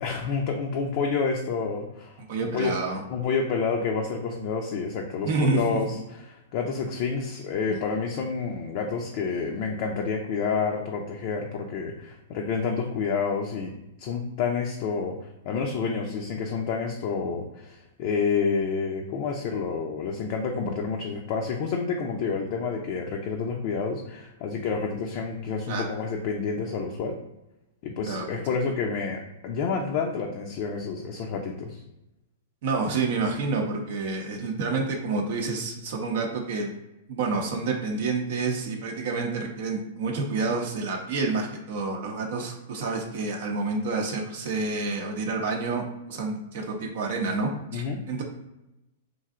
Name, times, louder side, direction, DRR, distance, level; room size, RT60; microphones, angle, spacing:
voice 1, 0.0-2.7 3.1-13.7 14.0-15.2 15.5-27.2 27.8-31.8 47.7-48.0, left 5 dB, 50° left, 1 dB, 0.4 m, -29 dB
voice 2, 2.3-3.0 5.2-6.0 7.7-7.8 25.7-25.8 28.1-28.2 32.6-36.7 37.1-48.2, right 3 dB, 60° right, 1 dB, 0.6 m, -28 dB
3.0 x 2.6 x 2.4 m, 0.93 s
hypercardioid pair, 130°, 0 cm